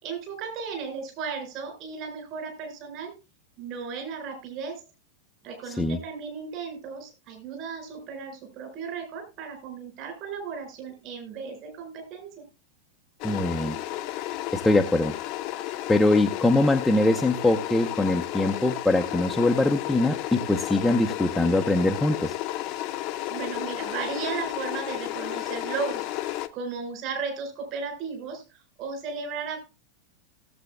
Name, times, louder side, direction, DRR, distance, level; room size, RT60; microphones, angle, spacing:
voice 1, 0.0-3.1 3.6-4.8 5.4-12.4 23.3-28.4 28.8-29.6, right 5 dB, 40° right, 5 dB, 4.6 m, -35 dB
voice 2, 5.7-6.0 13.2-13.8 14.5-15.1 15.9-22.4, left 2 dB, 5° left, 2 dB, 0.8 m, -23 dB
sound 1, 13.2-26.5, left 15 dB, 40° left, 0.9 m, -32 dB
17.5 x 7.8 x 2.2 m, 0.26 s
figure-of-eight pair, 90°, 0 cm